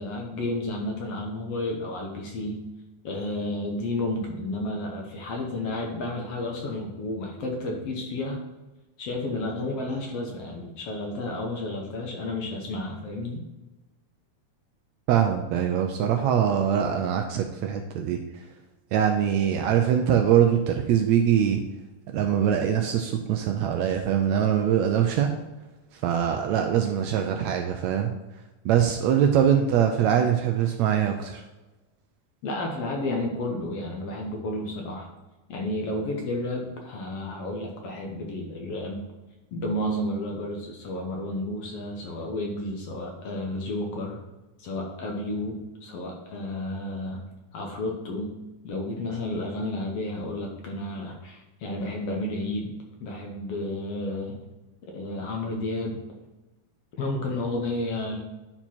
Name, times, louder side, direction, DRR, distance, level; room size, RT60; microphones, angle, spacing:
voice 1, 0.0-2.7 3.0-8.4 9.0-13.4 32.4-35.1 35.5-39.0 39.5-44.2 44.6-47.2 47.5-52.8 53.0-54.4 54.8-56.0 57.0-58.2, left 1 dB, 65° left, 1 dB, 1.7 m, -31 dB
voice 2, 15.1-18.2 18.9-21.6 22.1-25.3 26.0-28.1 28.6-31.4, right 9 dB, 80° right, 4 dB, 1.6 m, -23 dB
10.0 x 4.4 x 4.3 m, 1.1 s
omnidirectional pair, 3.6 m